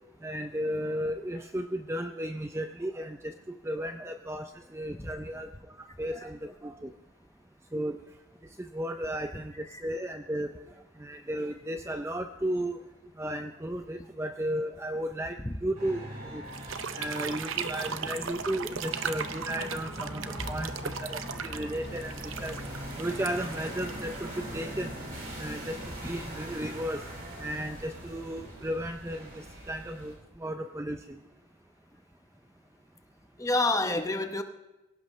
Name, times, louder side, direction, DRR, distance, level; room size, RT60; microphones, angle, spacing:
voice 1, 0.2-5.5 6.0-6.9 7.7-8.0 8.6-10.5 11.0-12.8 13.2-16.4 16.9-22.6 23.0-24.9 25.4-27.0 27.4-31.2, right 1 dB, 10° right, 0.4 m, -34 dB
sound 1, 15.7-30.1, equal, 40° right, 5.7 m, -41 dB
sound 2, 16.5-24.5, right 6 dB, 70° right, 0.8 m, -37 dB
voice 2, 33.4-34.4, left 2 dB, 15° left, 0.8 m, -29 dB
24.0 x 16.5 x 3.2 m
head